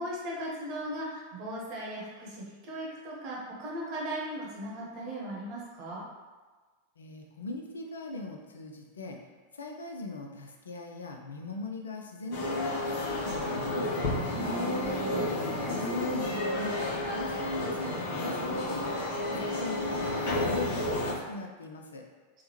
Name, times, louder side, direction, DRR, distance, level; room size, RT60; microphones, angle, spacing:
voice 1, 0.0-6.0 14.5-15.4 19.3-19.4, right 1 dB, 40° right, -4 dB, 0.9 m, -38 dB
voice 2, 7.0-9.2 9.5-14.3 15.4-16.8 17.1-18.9 19.3-22.0, left 2 dB, 70° left, 2 dB, 0.3 m, -40 dB
sound 1, 12.3-21.1, left 1 dB, 50° left, 0.8 m, -31 dB
3.4 x 2.1 x 3.0 m, 1.3 s
figure-of-eight pair, 90°, 0 cm